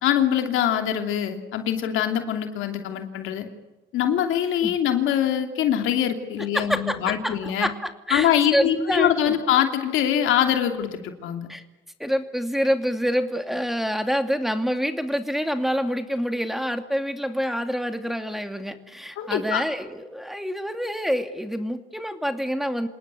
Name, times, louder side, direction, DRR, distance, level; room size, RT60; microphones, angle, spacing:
voice 1, 0.0-3.4 3.9-7.7 8.1-11.5 19.2-19.6, left 10 dB, 90° left, 5 dB, 2.9 m, -23 dB
voice 2, 6.5-9.4 11.5-11.6 12.0-22.9, equal, ahead, 7 dB, 2.5 m, -27 dB
27.5 x 19.0 x 8.5 m, 1.1 s
cardioid pair, 90°, 20 cm